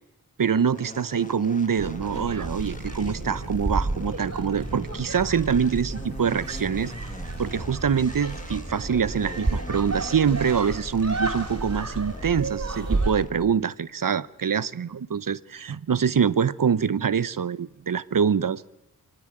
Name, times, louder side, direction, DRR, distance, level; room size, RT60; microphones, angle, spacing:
voice 1, 0.4-6.9 7.4-18.6, right 7 dB, 65° right, 17 dB, 0.8 m, -25 dB
sound 1, 0.7-13.7, left 2 dB, 20° left, 1.7 m, -42 dB
sound 2, 1.8-13.1, right 2 dB, 50° right, 4.0 m, -31 dB
24.5 x 17.0 x 8.8 m, 0.96 s
cardioid pair, 45°, 36 cm